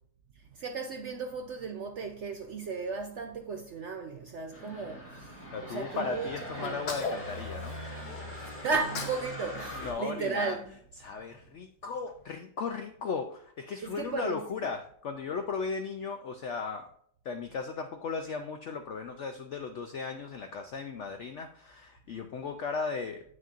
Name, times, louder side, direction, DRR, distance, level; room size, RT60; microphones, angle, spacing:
voice 1, 0.5-6.3 6.5-6.8 8.4-10.6 13.8-14.4, right 4 dB, 65° right, 0.7 m, -35 dB
sound 1, 4.5-9.9, equal, 10° left, 1.7 m, -41 dB
voice 2, 5.5-7.8 9.7-10.6 11.0-16.9 17.2-23.2, left 5 dB, 75° left, 0.6 m, -36 dB
Sneeze, 6.6-8.2 8.7-9.3 9.6-11.0, left 4 dB, 55° left, 1.2 m, -39 dB
8.9 x 6.4 x 2.5 m
omnidirectional pair, 1.8 m